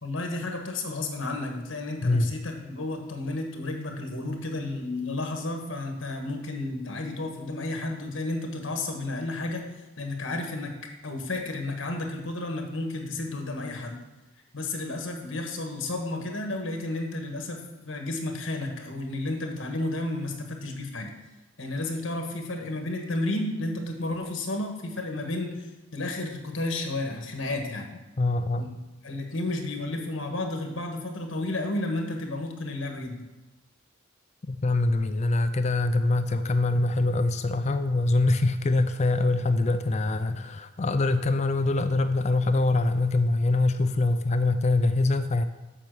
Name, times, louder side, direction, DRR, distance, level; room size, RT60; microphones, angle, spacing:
voice 1, 0.0-9.6 10.0-14.0 14.5-21.1 21.6-27.9 28.6-28.7 29.0-33.2, left 2 dB, 65° left, 3 dB, 1.5 m, -32 dB
voice 2, 28.2-28.8 34.5-45.4, left 2 dB, 35° left, 10 dB, 0.4 m, -24 dB
7.5 x 6.5 x 6.5 m, 1.1 s
head